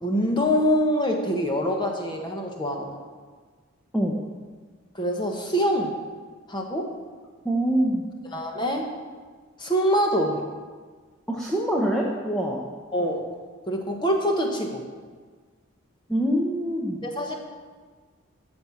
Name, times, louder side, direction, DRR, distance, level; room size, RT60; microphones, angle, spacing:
voice 1, 0.0-2.9 4.9-5.9 6.5-6.9 8.3-8.8 9.6-10.4 12.9-13.3 13.7-14.8 17.0-17.3, equal, 20° left, 2 dB, 1.1 m, -24 dB
voice 2, 7.4-8.0 11.3-12.7 16.1-17.0, right 1 dB, 5° left, -3 dB, 0.8 m, -24 dB
13.0 x 4.4 x 7.1 m, 1.5 s
head